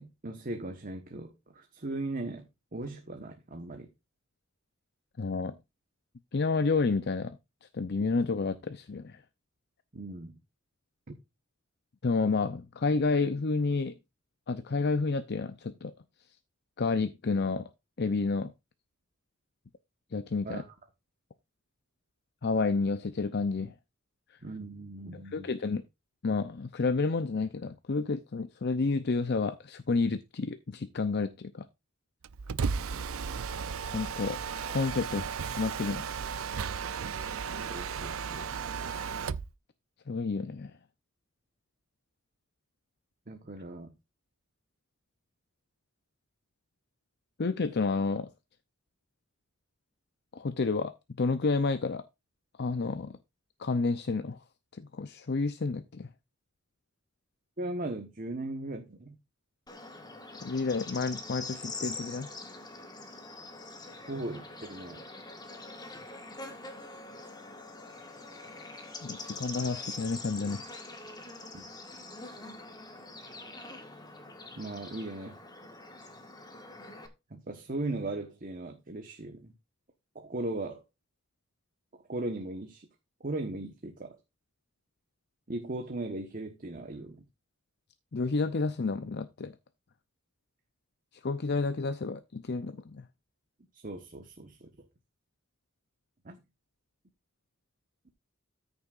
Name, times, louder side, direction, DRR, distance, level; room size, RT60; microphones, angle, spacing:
voice 1, 0.0-3.9 9.9-10.4 20.4-20.6 24.4-25.5 37.5-38.7 43.3-43.9 57.6-59.1 64.1-65.0 71.5-71.7 74.6-75.4 77.3-79.5 80.1-80.8 82.1-82.9 83.2-84.2 85.5-87.2 93.7-94.7 96.2-96.4, right 2 dB, 40° right, 1.2 m, -38 dB
voice 2, 5.2-5.5 6.3-7.4 7.7-9.2 12.0-14.0 14.5-15.9 16.8-17.7 18.0-18.5 20.1-20.6 22.4-23.7 25.3-25.8 26.2-31.7 33.9-34.4 34.7-36.1 40.1-40.7 47.4-48.3 50.3-50.9 51.2-52.0 52.6-53.2 53.6-54.4 54.7-56.1 60.4-62.3 69.0-70.6 88.1-89.5 91.2-93.0, left 4 dB, 55° left, 0.6 m, -30 dB
Mechanisms, 32.2-39.5, right 6 dB, 85° right, 0.5 m, -35 dB
Bird / Insect, 59.7-77.1, left 3 dB, 20° left, 1.6 m, -44 dB
13.5 x 6.8 x 2.5 m
head